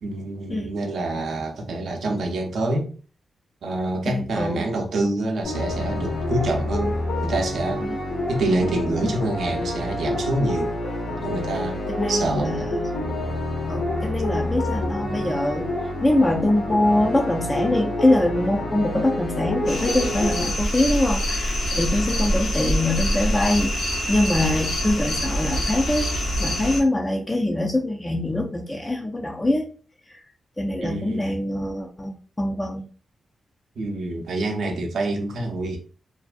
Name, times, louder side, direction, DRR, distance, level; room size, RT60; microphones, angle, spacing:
voice 1, 0.0-2.9 3.6-7.9 8.3-10.8 11.2-11.8 12.1-12.7 30.8-31.4 33.8-35.8, right 2 dB, 75° right, 0.6 m, -26 dB
voice 2, 4.1-4.7 7.8-8.0 12.0-12.9 13.7-15.7 16.0-26.1 26.4-29.7 30.1-30.2 30.6-32.8, left 1 dB, 15° left, 0.4 m, -23 dB
sound 1, 5.4-20.4, left 1 dB, 90° left, 0.9 m, -28 dB
sound 2, 19.7-26.8, equal, 65° left, 0.8 m, -25 dB
2.5 x 2.2 x 2.4 m
wide cardioid pair, 115°, 0 cm